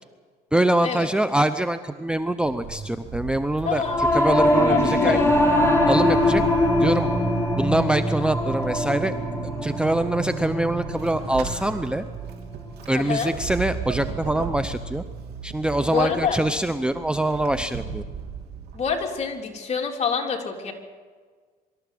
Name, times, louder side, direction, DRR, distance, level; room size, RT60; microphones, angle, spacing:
voice 1, 0.5-5.2 5.9-6.4 6.8-7.1 7.5-9.1 9.4-12.0 12.9-15.0 15.4-18.0, right 1 dB, 5° right, 10 dB, 0.7 m, -24 dB
Vehicle / Accelerating revving vroom / Squeak, 2.1-19.3, right 5 dB, 70° right, 3.3 m, -36 dB
voice 2, 3.6-4.0 4.7-5.3 12.9-13.3 15.9-16.4 18.7-20.7, left 6 dB, 40° left, 1 dB, 3.6 m, -26 dB
Singing / Musical instrument, 3.8-13.3, left 1 dB, 15° left, 4.3 m, -23 dB
24.5 x 13.5 x 8.6 m, 1.5 s
cardioid pair, 110°, 17 cm